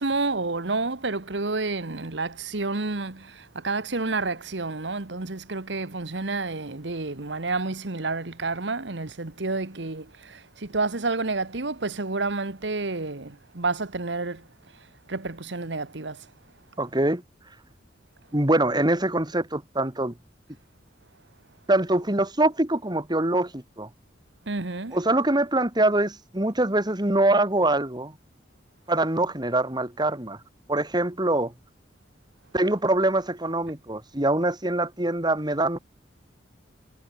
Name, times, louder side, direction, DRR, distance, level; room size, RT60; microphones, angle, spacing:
voice 1, 0.0-14.4 15.1-16.2 24.5-25.0, right 3 dB, 70° right, 1.5 m, -29 dB
voice 2, 16.8-17.2 18.3-20.1 21.7-23.9 24.9-28.1 28.9-30.4 30.7-31.5 32.5-35.8, right 2 dB, 25° right, 2.7 m, -24 dB
head